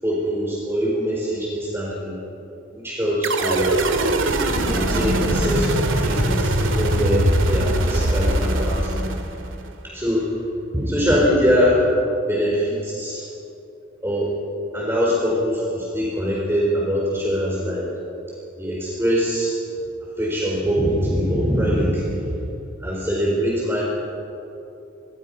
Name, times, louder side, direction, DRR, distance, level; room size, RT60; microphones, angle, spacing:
voice 1, 0.0-2.2 2.7-3.7 4.4-8.9 9.8-10.3 10.7-11.8 12.3-13.2 14.0-14.3 14.7-17.9 18.6-19.5 20.2-22.3 22.8-23.8, equal, 10° right, -5 dB, 4.5 m, -23 dB
sound 1, 3.2-9.7, right 1 dB, 90° right, 2.2 m, -21 dB
27.5 x 23.5 x 5.6 m, 2.8 s
head